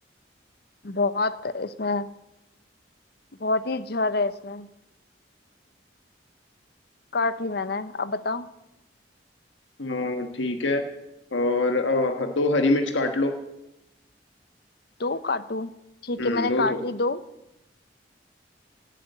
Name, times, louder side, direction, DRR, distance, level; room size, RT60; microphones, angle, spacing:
voice 1, 0.8-2.1 3.4-4.7 7.1-8.5 15.0-15.7 16.0-17.2, left 3 dB, 55° left, 14 dB, 0.8 m, -27 dB
voice 2, 9.8-10.9 11.3-13.3 16.2-16.8, left 2 dB, 80° left, 5 dB, 1.3 m, -24 dB
17.5 x 8.5 x 8.1 m, 0.91 s
head